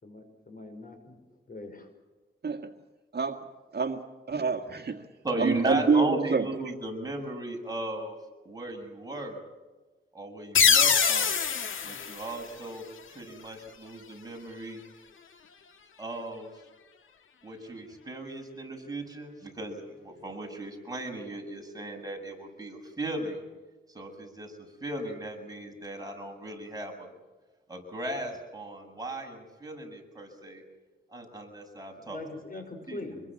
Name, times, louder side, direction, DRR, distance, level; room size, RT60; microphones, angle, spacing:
voice 1, 0.0-1.2 1.5-1.9 32.0-33.2, left 2 dB, 45° left, 6 dB, 5.6 m, -42 dB
voice 2, 3.7-5.0 5.4-6.4, right 5 dB, 55° right, 5 dB, 1.8 m, -27 dB
voice 3, 5.2-8.2 8.5-9.4 10.1-11.4 11.8-12.8 13.1-14.8 16.0-16.5 17.4-23.4 23.9-27.1 27.7-30.6 31.1-32.2 32.5-33.2, right 1 dB, 20° right, 2 dB, 7.2 m, -36 dB
sound 1, 10.5-13.1, left 6 dB, 85° left, 1.9 m, -24 dB
26.5 x 22.5 x 7.6 m, 1.2 s
wide cardioid pair, 95°, 20 cm